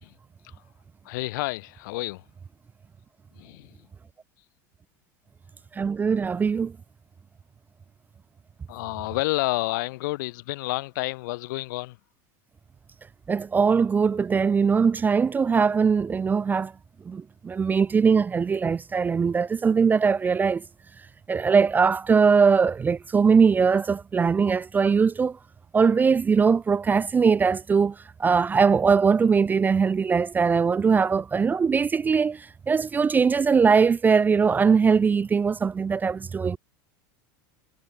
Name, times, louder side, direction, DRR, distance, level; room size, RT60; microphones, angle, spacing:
voice 1, 1.0-2.2 3.4-3.9 8.7-12.0, left 21 dB, 75° left, 3.0 m, -30 dB
voice 2, 5.7-6.7 13.3-16.7 17.1-20.6 21.3-25.4 25.7-36.6, right 5 dB, 15° right, 0.4 m, -21 dB
supercardioid pair, 120°, 10 cm